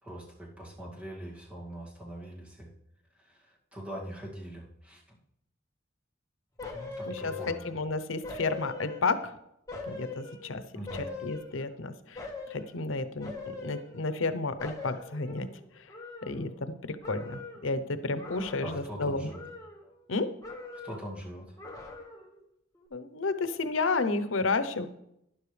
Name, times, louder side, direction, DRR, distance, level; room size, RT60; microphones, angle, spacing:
voice 1, 0.0-2.7 3.7-5.0 6.7-7.7 10.7-11.1 18.6-19.4 20.8-21.5, equal, 5° right, -4 dB, 2.3 m, -42 dB
sound 1, 6.6-7.9 8.2-9.3 9.7-11.8 12.1-12.7 13.2-14.3 14.6-16.7 17.0-17.7 18.2-19.0 19.3-20.1 20.4-21.1 21.6-22.4 22.7-22.9, left 3 dB, 20° left, 1.5 m, -42 dB
voice 2, 7.1-9.3 9.9-10.6 10.9-13.3 13.6-15.5 16.3-19.3 20.1-20.3 22.9-24.9, left 3 dB, 85° left, 10 dB, 0.8 m, -31 dB
12.0 x 11.0 x 3.3 m, 0.79 s
head